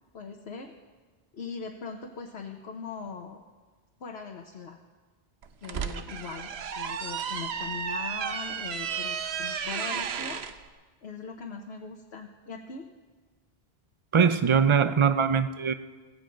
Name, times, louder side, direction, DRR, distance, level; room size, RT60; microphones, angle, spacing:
voice 1, 0.1-0.7 1.3-3.4 4.0-4.8 5.6-10.4 11.0-12.9, left 5 dB, 80° left, 2 dB, 1.3 m, -40 dB
sound 1, 5.4-10.5, right 7 dB, 85° right, 1.0 m, -33 dB
voice 2, 14.1-15.7, right 6 dB, 35° right, 12 dB, 0.6 m, -22 dB
16.5 x 15.5 x 5.2 m, 1.3 s
omnidirectional pair, 1.0 m